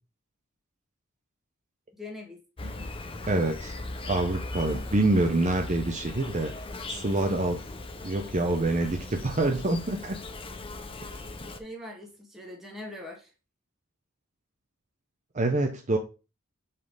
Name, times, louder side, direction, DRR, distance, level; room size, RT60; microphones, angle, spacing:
voice 1, 1.9-2.4 11.6-13.3, left 1 dB, ahead, -1 dB, 1.6 m, -42 dB
Insect, 2.6-11.6, left 2 dB, 25° left, 0.6 m, -38 dB
voice 2, 3.3-3.8 4.1-6.5 6.9-7.6 8.0-10.2 11.0-11.2 15.3-16.0, right 2 dB, 35° right, 3 dB, 0.7 m, -26 dB
5.5 x 4.1 x 5.2 m, 0.32 s
head